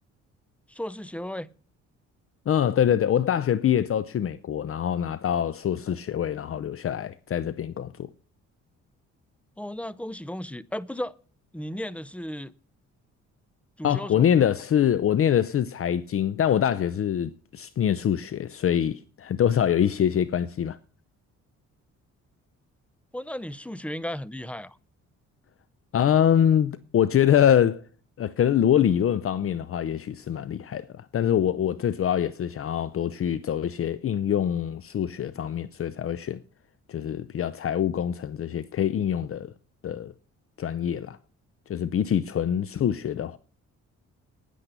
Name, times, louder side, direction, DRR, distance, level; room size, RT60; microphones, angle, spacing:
voice 1, 0.7-1.5 9.6-11.1 11.5-12.5 13.8-14.3 23.1-24.8, left 1 dB, 5° left, 0.7 m, -35 dB
voice 2, 2.5-8.1 13.8-20.8 25.9-27.8 28.2-36.4 36.9-39.5 39.8-40.1 40.6-41.2 41.7-43.4, left 9 dB, 45° left, 0.7 m, -24 dB
10.5 x 10.0 x 6.8 m
cardioid pair, 90°, 30 cm